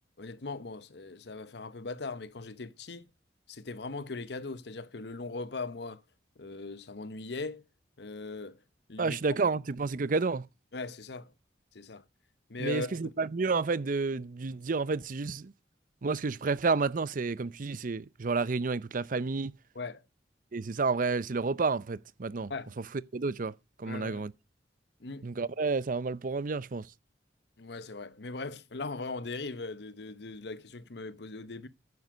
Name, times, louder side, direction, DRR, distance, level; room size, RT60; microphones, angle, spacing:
voice 1, 0.2-3.1 3.5-6.0 6.4-7.6 8.0-8.6 8.9-9.2 10.7-11.3 11.7-12.0 12.5-13.0 19.7-20.0 22.5-22.7 23.8-24.2 25.0-25.3 27.6-31.7, left 3 dB, 65° left, 0.9 m, -39 dB
voice 2, 9.0-10.5 12.6-15.5 16.0-19.5 20.5-22.5 22.8-22.9 23.1-24.3 25.2-26.9, right 4 dB, 50° right, 0.6 m, -30 dB
9.7 x 9.6 x 5.1 m
head